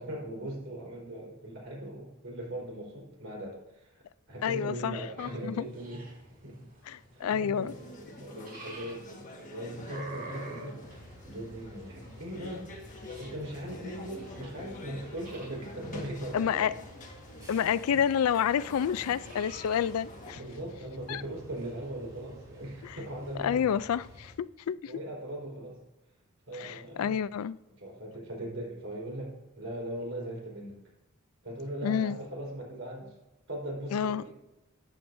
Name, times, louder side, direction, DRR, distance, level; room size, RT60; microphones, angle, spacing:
voice 1, 0.0-4.0 4.3-6.6 7.1-10.8 11.2-12.7 13.2-16.8 17.9-18.0 20.3-23.8 24.9-25.8 26.5-27.2 27.8-30.8 31.4-33.1 33.5-34.3, right 1 dB, 65° right, 4.2 m, -39 dB
voice 2, 4.4-5.7 6.9-7.7 16.3-16.7 17.5-20.4 21.1-21.2 22.8-23.0 23.4-24.9 26.6-27.6 31.8-32.2 33.9-34.2, left 8 dB, 75° left, 0.3 m, -29 dB
sound 1, 5.2-24.2, right 1 dB, 45° right, 3.8 m, -52 dB
sound 2, 7.7-20.3, left 1 dB, 35° left, 1.6 m, -47 dB
sound 3, 10.8-24.3, equal, 15° right, 3.5 m, -52 dB
13.5 x 9.1 x 2.7 m
head